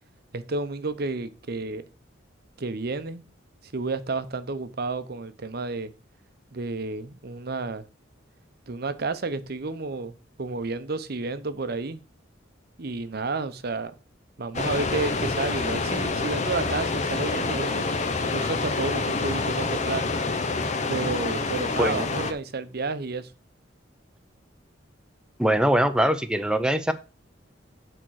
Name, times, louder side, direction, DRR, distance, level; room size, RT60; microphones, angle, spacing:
voice 1, 0.3-1.9 2.6-3.2 3.7-5.9 6.5-7.8 8.7-10.1 10.4-12.0 12.8-13.9 14.4-17.8 18.2-20.0 20.9-23.3, right 3 dB, 55° right, 12 dB, 0.8 m, -31 dB
sound 1, 14.5-22.3, left 3 dB, 40° left, 0.9 m, -27 dB
voice 2, 25.4-26.9, right 1 dB, 5° right, 9 dB, 0.7 m, -22 dB
8.7 x 4.5 x 6.3 m, 0.33 s
head